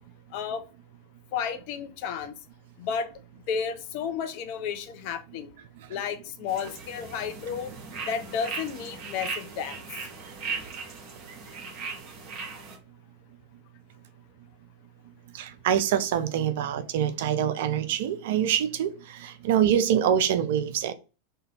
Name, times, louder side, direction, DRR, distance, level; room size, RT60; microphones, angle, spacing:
voice 1, 0.3-0.6 1.3-2.3 2.8-3.1 3.5-5.5 5.9-7.7 8.0-9.8, left 7 dB, 45° left, 0.4 m, -32 dB
sound 1, 6.5-12.8, right 4 dB, 35° right, 0.8 m, -38 dB
voice 2, 15.4-18.9 19.2-20.9, right 9 dB, 55° right, 0.3 m, -25 dB
2.5 x 2.4 x 2.8 m
figure-of-eight pair, 90°, 0 cm